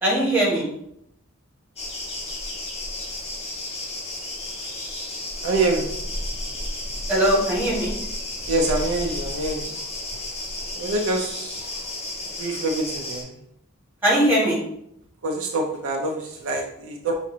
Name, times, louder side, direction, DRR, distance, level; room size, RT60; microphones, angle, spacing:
voice 1, 0.0-0.7 7.1-7.9 14.0-14.6, right 1 dB, 10° right, -6 dB, 1.6 m, -20 dB
sound 1, 1.8-13.2, left 1 dB, 30° left, 0.8 m, -32 dB
voice 2, 5.4-5.9 8.5-9.7 10.8-11.5 12.4-13.3 15.2-17.2, right 2 dB, 65° right, 1 dB, 0.5 m, -25 dB
5.9 x 2.5 x 2.7 m, 0.77 s
head